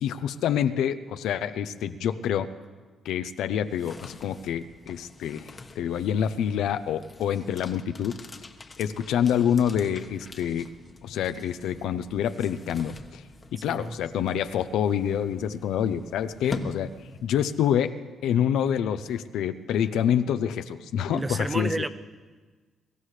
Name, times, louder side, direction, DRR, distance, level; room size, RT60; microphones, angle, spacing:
voice 1, 0.0-2.5 3.0-8.2 8.8-10.7 11.0-13.2 13.5-16.9 17.2-17.9 18.2-21.8, left 9 dB, 85° left, 10 dB, 0.6 m, -27 dB
sound 1, 3.5-17.6, left 3 dB, 30° left, 1.2 m, -44 dB
voice 2, 13.7-14.0 21.1-21.9, right 2 dB, 15° right, 10 dB, 0.7 m, -30 dB
23.5 x 14.5 x 3.3 m, 1.4 s
cardioid pair, 90°, 0 cm